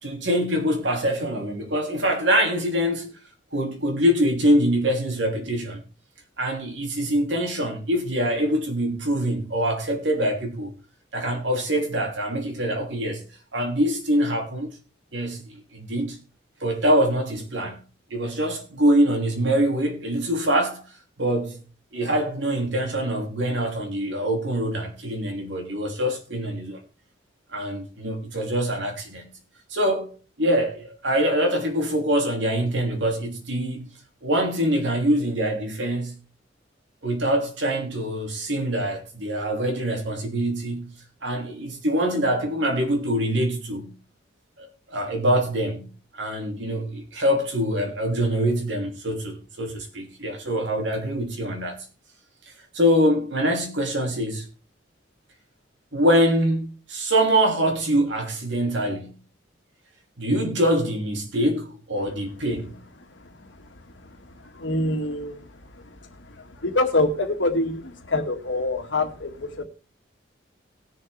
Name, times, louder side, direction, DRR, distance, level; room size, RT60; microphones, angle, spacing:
voice 1, 0.0-3.2 3.5-5.8 6.4-10.7 11.1-13.2 13.5-14.7 15.1-16.2 16.6-17.8 18.1-20.8 21.2-21.6 21.9-26.8 27.5-29.3 29.7-33.9 34.2-36.1 37.0-40.9 41.2-43.9 44.6-45.9 46.2-51.8 52.7-54.5 55.9-59.1 60.2-62.8, equal, 75° right, 2.9 m, -24 dB
voice 2, 64.5-65.4 66.6-69.6, left 2 dB, 80° left, 1.8 m, -25 dB
19.5 x 6.7 x 3.4 m
head